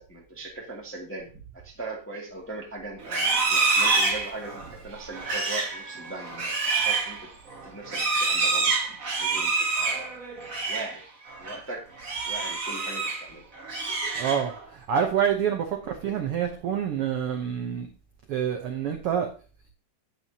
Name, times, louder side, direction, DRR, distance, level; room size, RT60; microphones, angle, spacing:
voice 1, 0.0-7.3 7.6-10.2 10.6-11.0 11.4-11.9 12.2-13.4, right 2 dB, 5° left, -1 dB, 0.9 m, -40 dB
Livestock farm animals working animals, 3.0-10.9 11.3-11.6 12.0-13.3 13.6-14.6, right 4 dB, 40° right, 1.2 m, -27 dB
voice 2, 14.1-17.9 18.3-19.3, right 8 dB, 70° right, 3 dB, 1.3 m, -27 dB
9.1 x 8.7 x 2.8 m, 0.36 s
omnidirectional pair, 3.7 m